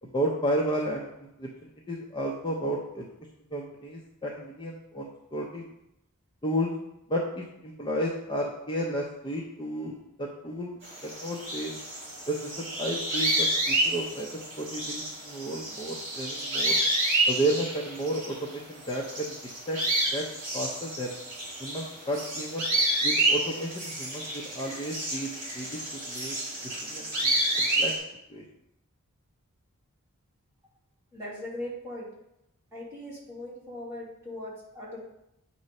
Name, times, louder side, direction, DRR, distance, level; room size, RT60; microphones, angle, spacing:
voice 1, 0.0-3.1 3.5-5.6 6.4-6.7 7.1-11.8 12.3-14.3 14.6-16.7 17.3-19.3 19.7-19.8 20.1-20.2 20.5-21.1 21.6-22.7 23.0-25.3 25.5-25.8 26.1-26.3 26.8-27.9 28.3-28.4, right 1 dB, 20° left, -3 dB, 0.7 m, -32 dB
sound 1, 10.8-18.5 18.8-28.0, right 1 dB, 40° right, 2.6 m, -29 dB
voice 2, 31.1-32.1 32.7-35.0, left 1 dB, 15° right, -8 dB, 2.3 m, -39 dB
8.5 x 3.1 x 5.3 m, 0.83 s
head